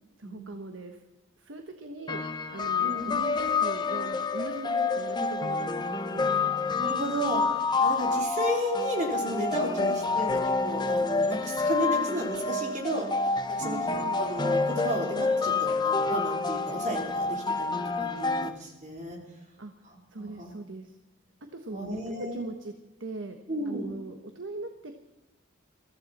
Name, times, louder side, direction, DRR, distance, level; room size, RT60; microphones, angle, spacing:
voice 1, 0.2-1.0 1.4-6.5 9.8-10.0 13.6-14.2 19.6-19.7 20.1-21.0 21.5-22.7 23.0-23.4 23.7-25.0, right 2 dB, 70° right, 6 dB, 1.2 m, -40 dB
sound 1, 2.1-18.5, left 4 dB, 20° left, 0.8 m, -28 dB
voice 2, 2.8-3.2 6.8-13.8 14.2-19.2 20.2-20.5 21.7-22.4 23.5-23.9, equal, 35° right, 0 dB, 3.7 m, -33 dB
23.0 x 15.0 x 4.2 m, 1.0 s
head